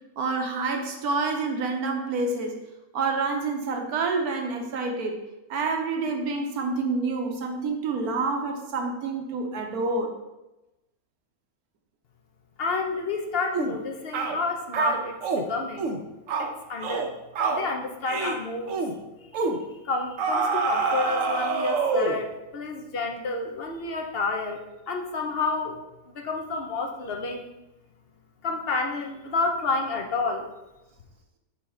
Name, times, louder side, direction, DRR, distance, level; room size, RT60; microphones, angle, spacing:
voice 1, 0.2-2.6 2.9-5.2 5.5-10.1, right 3 dB, 80° right, 3 dB, 1.4 m, -28 dB
voice 2, 12.6-15.9 16.4-17.1 17.5-18.8 19.8-24.6 24.9-25.8 26.1-27.5 28.4-30.5, left 3 dB, 50° left, 3 dB, 0.8 m, -30 dB
sound 1, 13.5-13.7 14.1-14.4 14.7-15.4 15.8-16.0 16.3-16.5 16.8-17.1 17.3-17.6 18.1-18.4 18.7-18.9 19.3-19.6 20.2-22.2, right 4 dB, 65° right, 1.1 m, -26 dB
5.5 x 4.3 x 5.0 m, 0.99 s
omnidirectional pair, 1.6 m